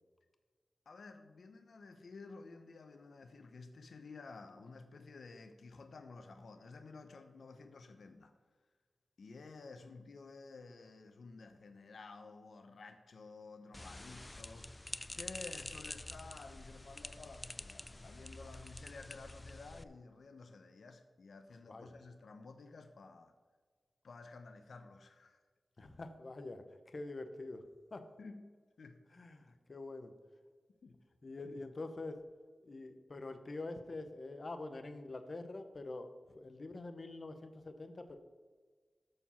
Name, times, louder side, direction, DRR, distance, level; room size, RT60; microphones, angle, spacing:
voice 1, 0.9-8.3 9.2-23.3 24.0-25.4 28.2-28.5 28.8-29.0 30.8-31.0 31.4-31.6, left 3 dB, 70° left, 0.7 m, -53 dB
sound 1, 13.7-19.8, left 1 dB, 20° left, 0.3 m, -47 dB
voice 2, 25.8-27.6 27.9-28.0 29.1-30.1 31.2-32.2 32.6-36.1 36.3-38.2, left 2 dB, 40° left, 0.8 m, -45 dB
13.0 x 4.8 x 5.6 m
wide cardioid pair, 135°, 0 cm